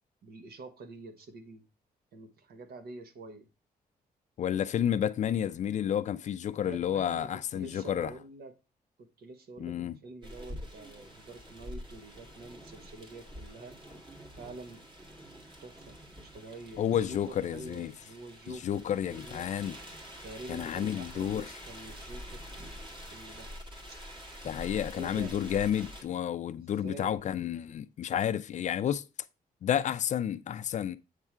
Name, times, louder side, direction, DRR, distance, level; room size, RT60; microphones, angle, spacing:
voice 1, 0.2-1.6 2.1-3.5 6.6-8.5 9.0-13.8 14.4-14.8 15.6-16.0 16.3-18.8 19.1-19.5 20.2-22.8 23.1-23.5 23.9-24.0 24.9-25.4 26.6-27.3, right 2 dB, 80° right, 1.3 m, -47 dB
voice 2, 4.4-8.1 9.6-10.0 16.8-17.9 18.5-19.8 20.5-21.5 24.4-29.0 29.6-31.0, left 9 dB, 50° left, 0.4 m, -31 dB
sound 1, 10.2-26.0, equal, 30° right, 2.1 m, -46 dB
8.1 x 3.6 x 4.4 m
wide cardioid pair, 175°, 16 cm